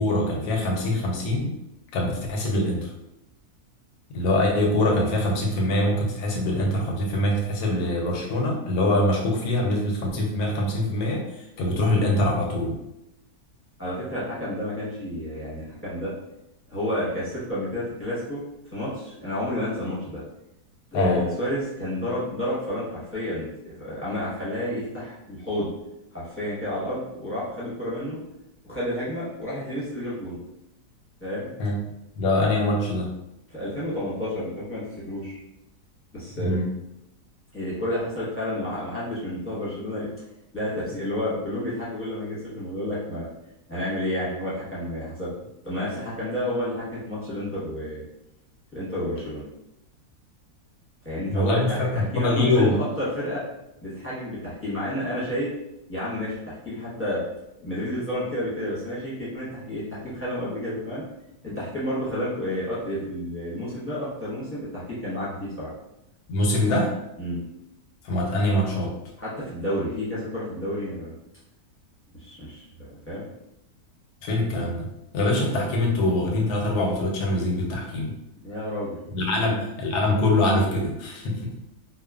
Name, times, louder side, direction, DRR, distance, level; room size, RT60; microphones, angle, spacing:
voice 1, 0.0-1.5 1.9-2.9 4.1-11.2 11.6-12.8 20.9-21.2 31.6-31.7 32.2-33.1 36.4-36.6 51.3-52.8 66.3-66.9 68.0-68.9 74.2-74.9 75.1-78.1 79.1-81.5, left 1 dB, 85° left, 0 dB, 1.2 m, -23 dB
voice 2, 13.8-16.1 16.7-18.4 18.7-20.2 20.9-23.5 23.8-25.7 26.1-28.2 28.6-30.4 31.2-31.5 33.5-35.4 36.1-36.5 37.5-40.1 40.5-43.3 43.7-45.3 45.6-48.0 48.7-49.4 51.0-53.4 53.8-55.5 55.9-57.2 57.6-61.0 61.4-65.7 67.2-67.4 69.2-71.1 72.2-73.3 78.4-79.0 79.4-79.6, left 1 dB, 10° left, -10 dB, 0.7 m, -30 dB
3.0 x 2.0 x 2.3 m, 0.85 s
omnidirectional pair, 1.7 m